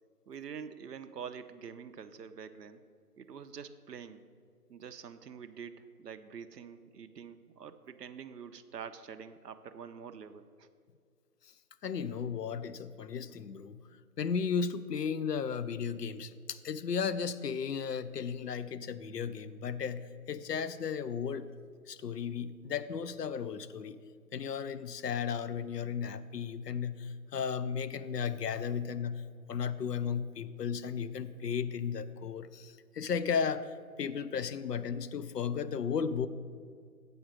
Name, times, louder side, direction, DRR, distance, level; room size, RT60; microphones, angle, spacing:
voice 1, 0.3-2.8 3.2-4.2 4.7-10.7, right 7 dB, 85° right, 10 dB, 0.6 m, -46 dB
voice 2, 11.8-13.8 14.2-21.5 21.9-24.0 24.3-29.2 29.5-33.7 34.0-36.3, left 6 dB, 80° left, 14 dB, 0.6 m, -35 dB
7.9 x 5.1 x 6.3 m, 2.1 s
figure-of-eight pair, 155°, 47 cm